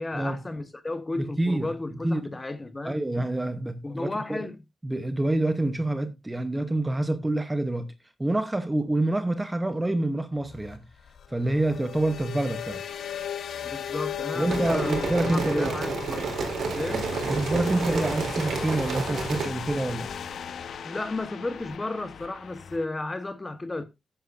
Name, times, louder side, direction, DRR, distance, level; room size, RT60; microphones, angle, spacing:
voice 1, 0.0-3.0 3.8-4.6 13.6-16.4 16.7-17.1 20.8-23.8, left 2 dB, 20° left, 1.2 m, -33 dB
voice 2, 1.2-1.7 2.0-2.3 2.8-4.5 4.8-7.9 8.2-10.8 11.3-12.8 14.3-15.8 17.3-20.1, right 1 dB, 10° right, 0.9 m, -27 dB
sound 1, 10.4-22.8, left 8 dB, 70° left, 1.0 m, -36 dB
sound 2, 14.5-19.5, right 4 dB, 75° right, 3.7 m, -30 dB
13.5 x 9.9 x 2.6 m
wide cardioid pair, 160°, 0 cm